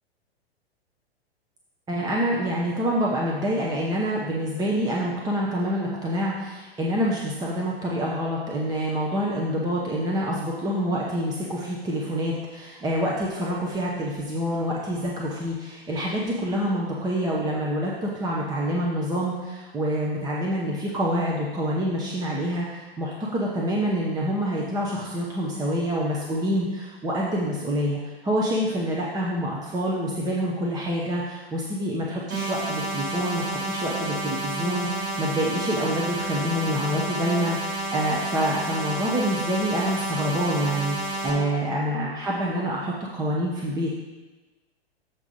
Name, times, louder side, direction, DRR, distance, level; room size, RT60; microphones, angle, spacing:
voice 1, 1.9-43.9, equal, 10° right, -4 dB, 0.9 m, -27 dB
sound 1, 32.3-41.3, right 1 dB, 40° right, 2.4 m, -30 dB
7.4 x 4.8 x 5.4 m, 1.2 s
figure-of-eight pair, 110°, 32 cm